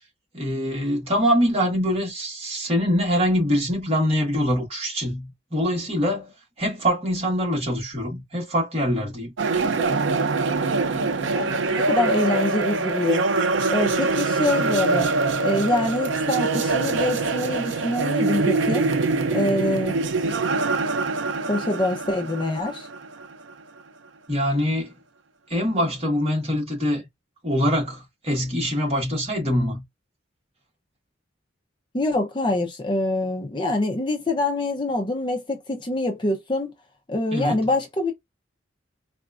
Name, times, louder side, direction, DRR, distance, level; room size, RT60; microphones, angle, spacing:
voice 1, 0.3-6.3 6.6-9.3 24.3-24.9 25.5-27.0 27.4-29.8 37.3-37.6, equal, 30° right, 1.4 m, -24 dB
sound 1, 9.4-23.5, right 3 dB, 75° right, 0.4 m, -24 dB
voice 2, 10.9-13.3 13.7-15.1 15.4-18.9 19.3-20.0 21.5-22.9 31.9-36.7 37.1-38.1, left 2 dB, 25° left, 0.5 m, -25 dB
3.9 x 2.4 x 2.4 m
head